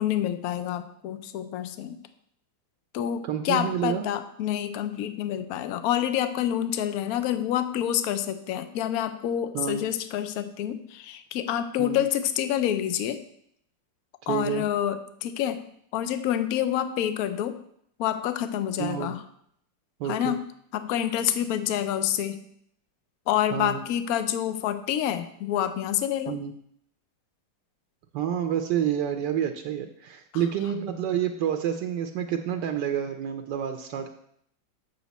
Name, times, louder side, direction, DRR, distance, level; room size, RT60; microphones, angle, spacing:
voice 1, 0.0-2.0 2.9-13.2 14.3-15.6 15.9-17.6 18.0-19.2 20.0-20.4 20.7-22.4 23.3-26.4 30.3-30.4, left 11 dB, 65° left, 10 dB, 1.0 m, -27 dB
voice 2, 3.2-4.1 9.5-9.8 11.8-12.0 14.3-14.7 18.8-19.1 20.0-20.3 23.5-23.8 26.3-26.5 28.1-34.1, right 9 dB, 75° right, 6 dB, 1.2 m, -28 dB
8.2 x 6.4 x 4.1 m, 0.71 s
omnidirectional pair, 1.9 m